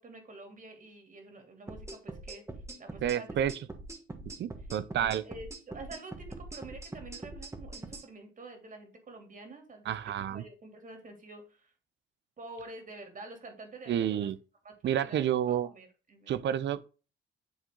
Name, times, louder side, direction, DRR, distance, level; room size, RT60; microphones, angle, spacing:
voice 1, 0.0-2.4 2.8-3.4 5.0-11.7 12.4-14.3 14.6-16.4, right 2 dB, 40° right, 3.0 m, -48 dB
sound 1, 1.7-8.1, right 2 dB, 15° right, 1.4 m, -43 dB
voice 2, 3.0-3.5 4.4-5.2 9.9-10.4 13.9-14.4 14.8-15.7 16.3-16.9, right 10 dB, 65° right, 0.6 m, -29 dB
10.5 x 3.7 x 3.8 m
cardioid pair, 90°, 20 cm